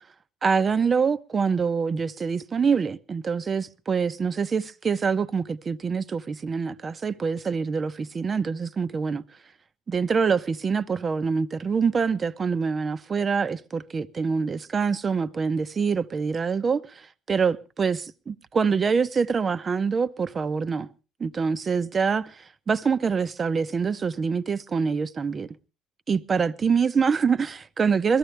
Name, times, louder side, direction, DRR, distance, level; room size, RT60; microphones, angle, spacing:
voice 1, 0.4-9.2 9.9-18.0 18.3-20.9 21.2-25.5 26.1-28.2, right 5 dB, 30° right, 0.8 m, -25 dB
21.5 x 14.0 x 3.3 m
cardioid pair, 100°, 0 cm